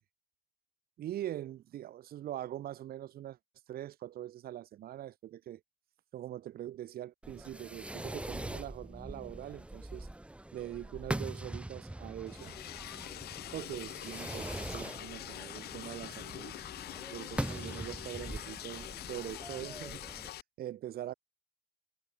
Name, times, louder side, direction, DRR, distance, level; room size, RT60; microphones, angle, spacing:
voice 1, 1.0-3.4 3.7-5.6 6.1-10.1 10.5-12.6 13.5-16.5 17.1-20.0 20.6-21.1, right 12 dB, 65° right, 2.3 m, -43 dB
Fireworks, 7.2-20.3, right 1 dB, 5° right, 1.9 m, -42 dB
Liquid, 12.3-20.4, left 14 dB, 70° left, 2.6 m, -44 dB
cardioid pair, 110°, 17 cm